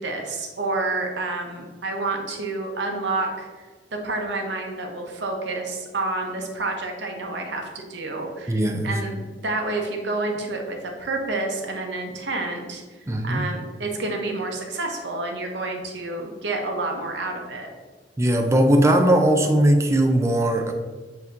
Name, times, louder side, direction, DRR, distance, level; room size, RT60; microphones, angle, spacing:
voice 1, 0.0-12.8 13.2-17.7, right 2 dB, 75° right, 2 dB, 0.8 m, -29 dB
voice 2, 8.5-8.9 13.1-13.4 18.2-20.7, right 1 dB, 15° right, 3 dB, 0.5 m, -19 dB
7.1 x 2.8 x 2.7 m, 1.3 s
head